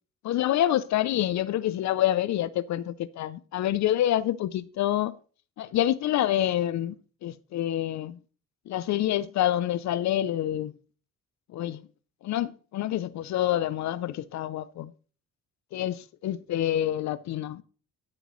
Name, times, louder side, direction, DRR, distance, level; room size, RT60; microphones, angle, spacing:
voice 1, 0.2-5.2 5.6-8.2 8.7-10.7 11.5-11.8 12.2-14.9 15.7-17.6, left 12 dB, 65° left, 0.5 m, -27 dB
13.0 x 7.8 x 3.1 m
cardioid pair, 90°, 30 cm